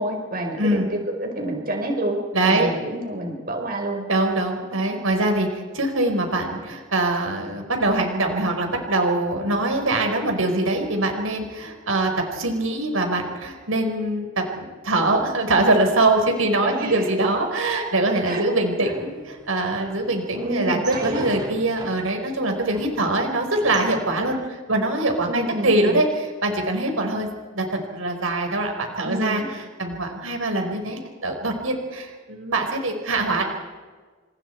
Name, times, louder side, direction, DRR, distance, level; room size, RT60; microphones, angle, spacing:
voice 1, 0.0-4.0 16.6-17.1 18.2-18.5 18.8-18.9 20.3-21.2 25.3-26.0 29.0-29.5, right 1 dB, 45° right, 2 dB, 4.8 m, -28 dB
voice 2, 0.6-0.9 2.3-2.7 4.1-5.5 5.7-27.3 27.5-29.4 29.8-33.4, right 2 dB, 85° right, 3 dB, 4.8 m, -23 dB
sound 1, 18.9-23.9, right 1 dB, 20° right, 4.3 m, -40 dB
30.0 x 28.5 x 4.6 m, 1.4 s
head